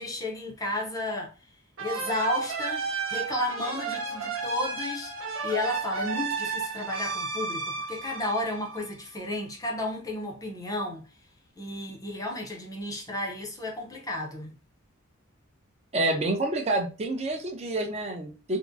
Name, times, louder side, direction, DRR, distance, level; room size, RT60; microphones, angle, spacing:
voice 1, 0.0-1.5 1.8-5.1 5.4-11.1 11.6-14.5, left 1 dB, 15° left, 0.5 m, -32 dB
sound 1, 1.8-9.2, right 4 dB, 65° right, 0.8 m, -33 dB
voice 2, 15.9-18.6, right 2 dB, 30° right, 0.5 m, -28 dB
3.5 x 2.0 x 2.5 m
head